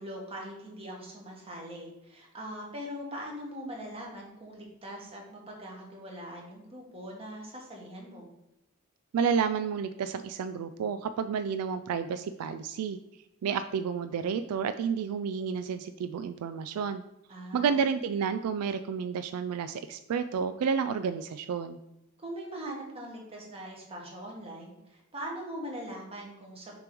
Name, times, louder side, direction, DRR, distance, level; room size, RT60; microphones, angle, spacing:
voice 1, 0.0-8.3 17.3-17.9 22.2-26.8, equal, 25° right, -2 dB, 1.5 m, -41 dB
voice 2, 9.1-13.0 13.4-17.0 17.5-21.8, right 6 dB, 75° right, 11 dB, 0.3 m, -30 dB
6.8 x 3.0 x 5.2 m, 0.91 s
head